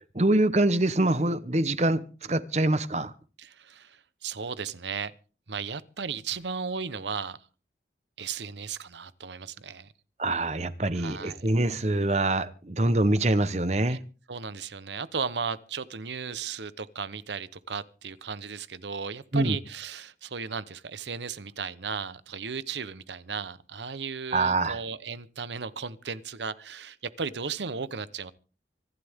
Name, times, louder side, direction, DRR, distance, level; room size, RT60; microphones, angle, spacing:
voice 1, 0.1-2.0 2.3-3.1 10.2-14.0 19.3-19.6 24.3-24.8, right 2 dB, 40° right, 1.0 m, -24 dB
voice 2, 3.4-5.1 5.5-7.4 8.2-9.9 10.9-11.7 13.9-14.0 14.3-28.3, right 5 dB, 85° right, 1.0 m, -35 dB
25.0 x 11.5 x 3.6 m
head